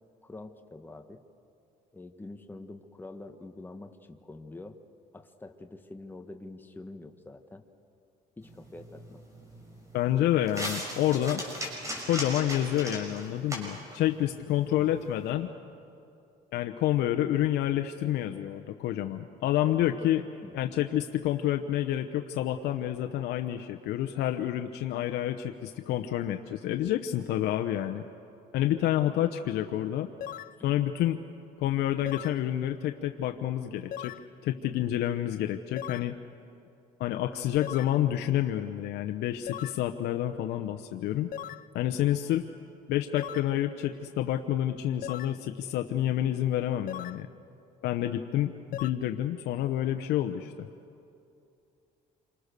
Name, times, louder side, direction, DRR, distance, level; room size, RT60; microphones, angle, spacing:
voice 1, 0.2-1.2 1.9-4.8 5.1-7.6 8.4-9.2 20.4-20.7, left 2 dB, 10° left, 6 dB, 1.4 m, -46 dB
sound 1, 8.4-15.3, equal, 20° right, 6.5 m, -40 dB
voice 2, 9.9-11.4 12.1-15.5 16.5-20.2 20.5-28.1 28.5-30.1 30.6-31.2 31.6-34.1 34.4-36.2 37.0-41.3 41.7-42.4 42.9-47.3 47.8-48.5 48.8-50.7, left 12 dB, 80° left, 6 dB, 0.9 m, -28 dB
sound 2, 30.2-30.6 32.1-32.4 33.9-34.3 35.8-36.1 37.6-38.0 39.5-39.8 41.3-41.7 43.2-43.5 45.0-45.4 46.9-47.2 48.7-48.9, left 11 dB, 55° left, 0.6 m, -39 dB
27.5 x 25.0 x 6.8 m, 2.7 s
cardioid pair, 110°, 17 cm